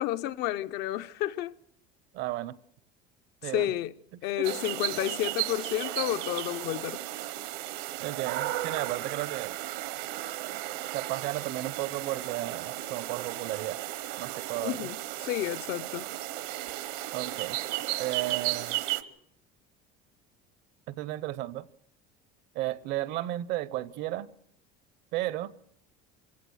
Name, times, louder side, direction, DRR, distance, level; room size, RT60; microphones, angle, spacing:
voice 1, 0.0-1.5 3.4-3.9 4.2-7.0 14.6-15.0 15.2-16.1, left 13 dB, 60° left, 0.7 m, -31 dB
voice 2, 2.1-2.5 3.4-3.7 4.1-4.2 8.0-9.6 10.9-13.8 14.2-14.9 17.1-17.6 18.0-18.8 20.9-21.7 22.5-24.3 25.1-25.5, right 15 dB, 60° right, 0.8 m, -34 dB
sound 1, 4.4-19.0, right 16 dB, 75° right, 1.1 m, -34 dB
25.5 x 17.0 x 6.4 m
cardioid pair, 150°, 20 cm